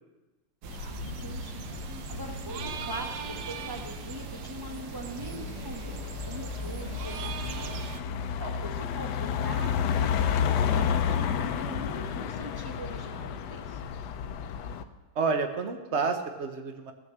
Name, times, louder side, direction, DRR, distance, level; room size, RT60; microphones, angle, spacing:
sound 1, 0.6-8.0, right 8 dB, 80° right, 1.6 m, -40 dB
sound 2, 0.7-14.8, left 8 dB, 70° left, 1.0 m, -32 dB
voice 1, 0.7-7.8 8.4-13.8, right 1 dB, 15° right, 1 dB, 1.0 m, -42 dB
sound 3, 1.0-7.9, left 2 dB, 35° right, 3.5 m, -47 dB
voice 2, 15.2-16.9, right 4 dB, 60° right, 6 dB, 0.7 m, -29 dB
15.5 x 6.5 x 7.3 m, 1.1 s
omnidirectional pair, 2.4 m